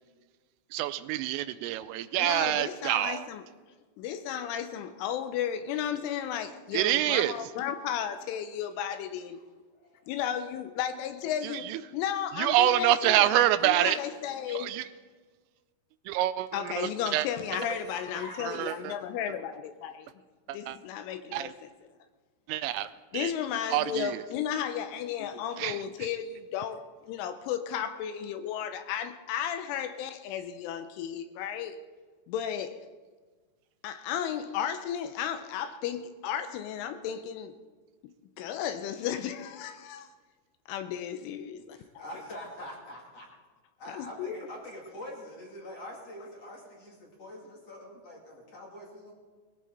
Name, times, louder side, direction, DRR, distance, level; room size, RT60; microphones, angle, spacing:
voice 1, 0.7-3.3 6.7-7.3 11.7-11.8 12.4-14.0 14.5-14.8 16.1-16.5 16.8-17.3 18.5-18.9 20.5-20.8 21.3-21.5 22.5-22.9 23.1-23.3 23.7-24.2 25.6-25.8, right 14 dB, 85° right, 3.2 m, -26 dB
voice 2, 2.2-3.4 4.0-9.4 10.1-14.7 16.5-20.1 20.5-21.7 23.1-31.8 32.3-32.9 33.8-37.6 38.4-40.1 40.7-41.8 43.9-44.4, left 9 dB, 80° left, 3.1 m, -34 dB
voice 3, 9.7-10.1 17.5-18.8 41.7-43.3 43.8-49.1, left 1 dB, 40° left, 2.9 m, -44 dB
21.5 x 17.0 x 4.0 m
omnidirectional pair, 5.8 m